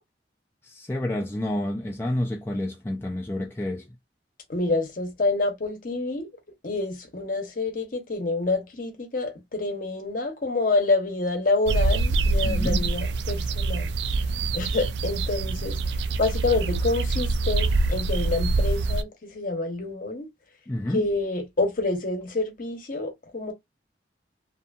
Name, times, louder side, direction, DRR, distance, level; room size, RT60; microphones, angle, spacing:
voice 1, 0.6-3.9 12.4-12.9 20.7-21.1, left 1 dB, 15° left, 0.3 m, -29 dB
voice 2, 4.5-6.3 6.6-13.9 14.5-15.8 16.2-20.3 20.9-23.5, left 3 dB, 50° left, 0.8 m, -27 dB
sound 1, 11.7-19.0, right 3 dB, 70° right, 0.3 m, -25 dB
2.7 x 2.5 x 2.2 m
head